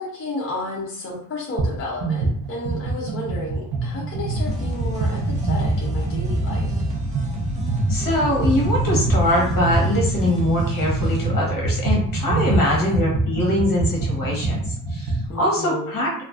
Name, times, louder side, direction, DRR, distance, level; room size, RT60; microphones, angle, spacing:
voice 1, 0.0-6.8 12.4-13.0 15.3-15.9, left 2 dB, 35° left, -4 dB, 0.5 m, -32 dB
sound 1, 1.6-1.7 2.0-15.3, right 2 dB, 70° right, 0.6 m, -24 dB
sound 2, 4.3-11.3, left 1 dB, 20° right, 0.4 m, -32 dB
voice 2, 7.9-16.2, left 1 dB, 60° left, -3 dB, 1.0 m, -23 dB
2.4 x 2.3 x 2.4 m, 0.67 s
wide cardioid pair, 155°, 37 cm